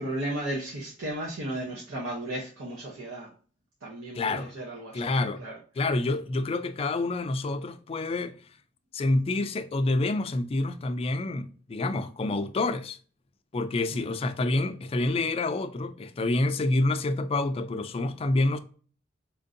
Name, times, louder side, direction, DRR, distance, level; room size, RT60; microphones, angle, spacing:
voice 1, 0.0-3.3 3.8-5.1 5.4-5.6 13.9-14.0, right 1 dB, 85° right, 0.8 m, -34 dB
voice 2, 4.1-4.5 4.9-5.4 5.8-8.3 8.9-13.0 13.5-18.6, left 2 dB, 30° left, 0.3 m, -27 dB
4.4 x 2.6 x 2.5 m
head